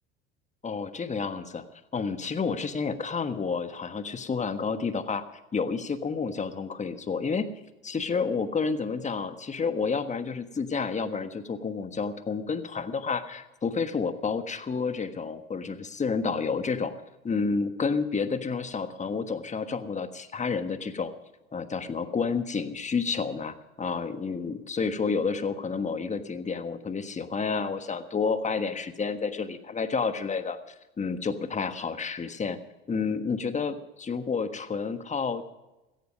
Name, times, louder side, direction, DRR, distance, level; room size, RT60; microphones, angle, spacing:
voice 1, 0.6-1.6 1.9-5.2 5.5-7.5 7.8-16.9 17.2-21.1 21.5-30.6 31.0-32.6 32.9-35.4, left 5 dB, 25° left, 10 dB, 1.4 m, -30 dB
16.5 x 14.0 x 5.3 m, 1.0 s
hypercardioid pair, 70°, 31 cm